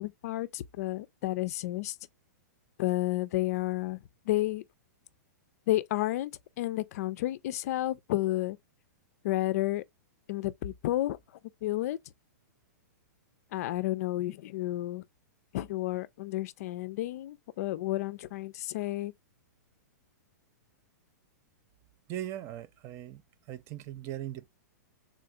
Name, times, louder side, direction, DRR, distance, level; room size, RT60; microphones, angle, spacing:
voice 1, 0.0-2.0 2.8-4.0 4.3-4.6 5.7-6.3 6.6-8.6 9.2-9.8 10.3-11.2 11.6-12.0 13.5-15.0 15.5-19.1, left 16 dB, 55° left, 0.4 m, -31 dB
voice 2, 22.1-23.2 23.5-24.5, right 12 dB, 30° right, 0.3 m, -39 dB
3.7 x 2.3 x 2.7 m
hypercardioid pair, 140°, 10 cm